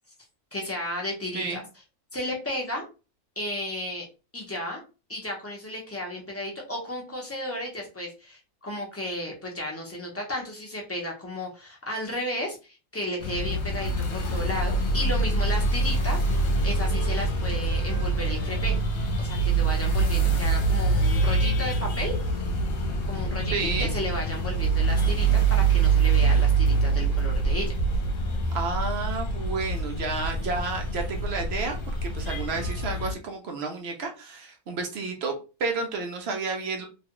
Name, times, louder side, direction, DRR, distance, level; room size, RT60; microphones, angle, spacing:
voice 1, 0.5-1.6 2.1-2.9 3.4-4.1 4.3-4.8 5.1-18.8 19.2-22.1 23.0-27.7, left 1 dB, 15° left, -2 dB, 0.6 m, -33 dB
sound 1, 13.2-33.2, right 3 dB, 65° left, 1.1 m, -25 dB
Wind instrument woodwind instrument, 15.8-19.4 19.7-23.5, equal, 80° right, 1.2 m, -48 dB
voice 2, 23.5-23.9 28.5-35.3 35.6-36.9, right 4 dB, 60° right, 3 dB, 0.7 m, -31 dB
3.0 x 2.3 x 2.9 m, 0.32 s
omnidirectional pair, 1.6 m